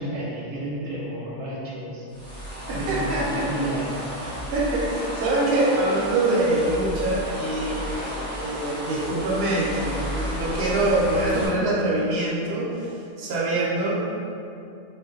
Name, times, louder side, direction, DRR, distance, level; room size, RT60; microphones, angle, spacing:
voice 1, 0.0-2.1 2.6-4.0, right 1 dB, 90° right, -5 dB, 1.0 m, -32 dB
sound 1, 2.1-11.5, equal, 5° left, 0.6 m, -33 dB
voice 2, 2.7-3.5 4.5-12.9 13.2-13.9, right 2 dB, 60° right, -6 dB, 0.9 m, -24 dB
2.7 x 2.1 x 3.7 m, 2.6 s
omnidirectional pair, 1.3 m